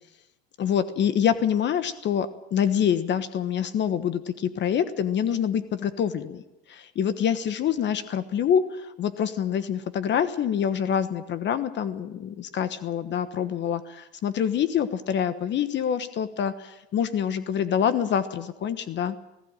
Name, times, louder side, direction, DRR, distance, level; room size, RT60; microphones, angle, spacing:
voice 1, 0.6-6.4 6.7-19.1, left 8 dB, 35° left, 13 dB, 1.3 m, -26 dB
19.0 x 16.0 x 8.9 m, 0.91 s
supercardioid pair, 125°, 31 cm